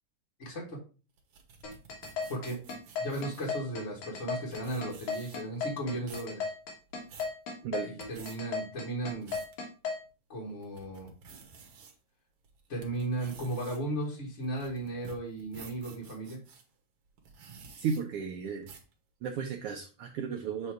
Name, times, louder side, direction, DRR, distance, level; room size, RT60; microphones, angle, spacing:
voice 1, 0.4-0.8 2.3-2.6 3.0-6.5 7.9-9.4 10.3-11.1 12.7-16.4, right 1 dB, 35° left, -3 dB, 1.2 m, -36 dB
sound 1, 1.2-3.6 4.2-4.3 4.5-5.6 5.9-6.3 6.8-7.3 7.9-8.4 8.9-9.6 10.1-10.2 10.6-11.9 12.4-16.6 17.2-18.0 18.6-18.9, right 5 dB, 60° right, 1.9 m, -51 dB
sound 2, 1.6-10.0, left 5 dB, 80° left, 2.9 m, -35 dB
voice 2, 17.8-18.7 19.2-20.7, right 6 dB, 80° right, 2 dB, 1.3 m, -34 dB
7.8 x 2.8 x 4.6 m, 0.35 s
omnidirectional pair, 3.3 m